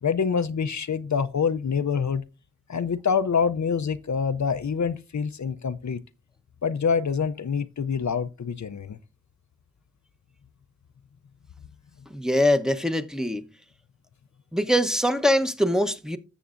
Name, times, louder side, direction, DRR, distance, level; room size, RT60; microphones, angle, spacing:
voice 1, 0.0-2.3 2.7-6.0 6.6-9.0, left 6 dB, 70° left, 0.5 m, -26 dB
voice 2, 12.1-13.4 14.5-16.2, left 1 dB, ahead, 0.8 m, -23 dB
14.0 x 7.0 x 2.5 m
wide cardioid pair, 45°, 30 cm